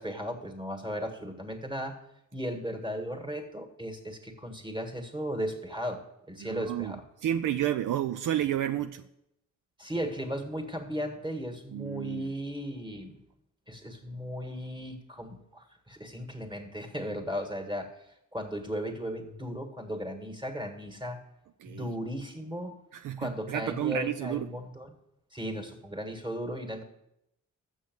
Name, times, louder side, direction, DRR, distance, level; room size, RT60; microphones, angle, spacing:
voice 1, 0.0-2.0 2.3-7.0 9.8-13.2 13.7-18.0 18.3-21.2 21.7-22.8 23.2-24.9 25.3-26.8, equal, 15° right, 4 dB, 1.8 m, -36 dB
voice 2, 6.4-7.0 7.2-9.0 11.7-12.3 21.6-21.9 22.9-24.5, right 11 dB, 70° right, 9 dB, 0.5 m, -31 dB
7.3 x 6.2 x 7.9 m, 0.82 s
cardioid pair, 60°, 33 cm